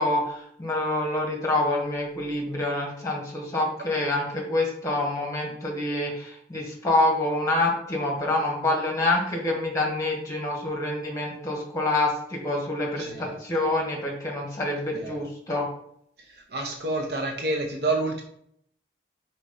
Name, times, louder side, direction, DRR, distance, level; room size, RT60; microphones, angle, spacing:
voice 1, 0.0-15.7, left 2 dB, 20° left, 0 dB, 1.9 m, -26 dB
voice 2, 13.0-13.4 14.9-15.2 16.5-18.2, right 2 dB, 60° right, 2 dB, 0.9 m, -28 dB
4.9 x 4.4 x 5.7 m, 0.69 s
head